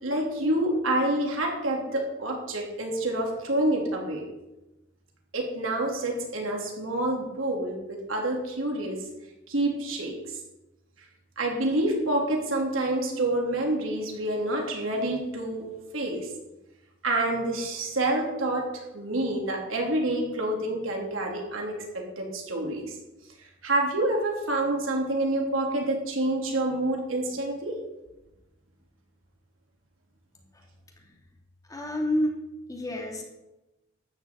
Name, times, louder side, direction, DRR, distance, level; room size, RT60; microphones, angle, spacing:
voice 1, 0.0-4.2 5.3-9.0 9.5-10.1 11.4-15.6 15.9-16.3 17.0-22.9 23.6-27.8, right 1 dB, 90° right, 0 dB, 3.3 m, -27 dB
voice 2, 31.7-32.4 32.7-33.2, left 1 dB, 20° left, 0 dB, 2.5 m, -29 dB
12.5 x 6.2 x 8.7 m, 0.99 s
head